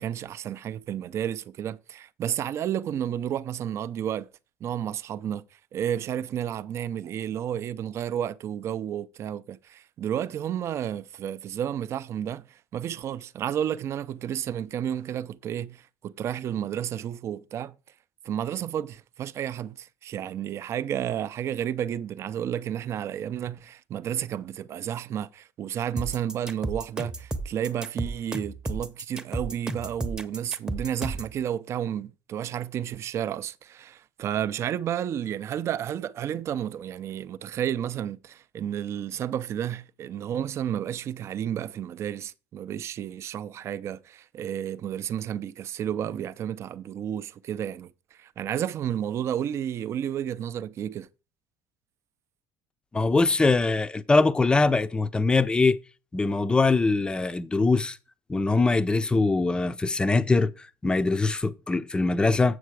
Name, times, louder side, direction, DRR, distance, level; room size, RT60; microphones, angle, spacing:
voice 1, 0.0-4.3 4.6-5.4 5.7-17.7 18.2-51.1, right 10 dB, 45° right, 0.5 m, -31 dB
sound 1, 26.0-31.3, right 2 dB, 10° right, 0.8 m, -33 dB
voice 2, 52.9-55.8 56.1-58.0 58.3-62.6, left 3 dB, 15° left, 0.5 m, -22 dB
7.8 x 6.4 x 4.7 m
cardioid pair, 125°, 7 cm